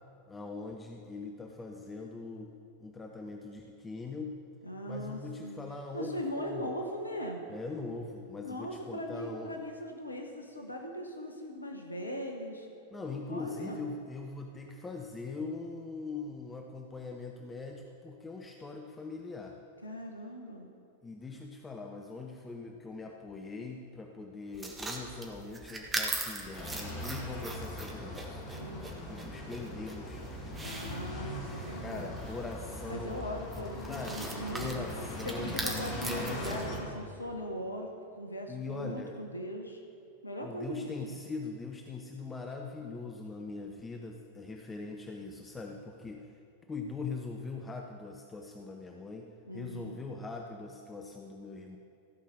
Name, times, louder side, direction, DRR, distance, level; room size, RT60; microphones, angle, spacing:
voice 1, 0.3-2.5 2.8-4.4 4.9-6.7 7.5-9.6 12.9-19.6 21.0-28.4 29.0-30.2 31.8-33.2 33.9-35.6 36.0-36.4 38.5-39.2 40.4-46.3 46.7-49.3 49.5-51.8, left 3 dB, 15° left, 2 dB, 0.7 m, -41 dB
voice 2, 4.6-5.6 5.9-7.4 8.4-12.7 13.3-13.9 19.8-20.7 28.5-28.9 30.6-32.5 32.9-34.8 35.2-39.8 40.2-41.2 49.4-50.0, equal, 80° left, 2 dB, 1.0 m, -40 dB
sound 1, 24.5-36.8, right 2 dB, 15° right, 1.4 m, -41 dB
sound 2, 26.5-36.8, left 1 dB, 40° left, 2.4 m, -41 dB
15.0 x 5.6 x 6.6 m, 2.6 s
figure-of-eight pair, 90°, 0 cm